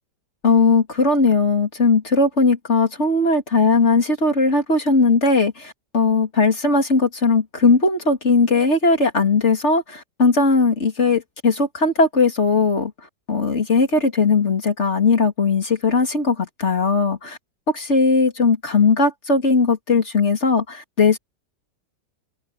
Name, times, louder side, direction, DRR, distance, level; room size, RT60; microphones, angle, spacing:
voice 1, 0.4-12.9 13.3-17.4 17.7-21.2, left 3 dB, 40° left, 3.1 m, -18 dB
open air
omnidirectional pair, 1.9 m